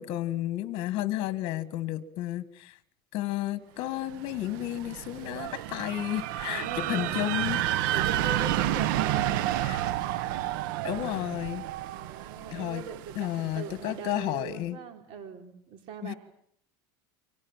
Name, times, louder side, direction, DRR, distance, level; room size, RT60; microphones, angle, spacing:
voice 1, 0.0-2.8 3.1-7.6 9.6-9.8 10.8-11.6 12.5-12.8 13.2-14.8 16.0-16.1, left 14 dB, 55° left, 13 dB, 2.0 m, -32 dB
sound 1, 4.1-13.9, right 13 dB, 85° right, 1.1 m, -31 dB
voice 2, 6.5-7.3 7.9-9.7 11.8-16.2, right 7 dB, 55° right, 6 dB, 4.0 m, -41 dB
29.0 x 25.0 x 7.6 m, 0.66 s
supercardioid pair, 135°, 11 cm